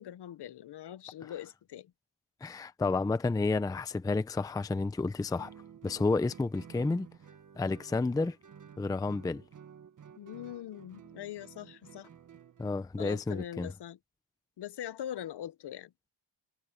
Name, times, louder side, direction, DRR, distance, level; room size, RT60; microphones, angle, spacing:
voice 1, 0.0-1.9 10.2-12.1 13.0-14.0 14.6-15.9, left 11 dB, 55° left, 0.8 m, -42 dB
voice 2, 2.4-5.5 5.8-7.1 7.6-8.4 8.8-9.4 12.6-13.7, left 3 dB, 10° left, 0.5 m, -30 dB
Guitar, 5.4-12.8, right 8 dB, 40° right, 1.5 m, -53 dB
wide cardioid pair, 170°, 48 cm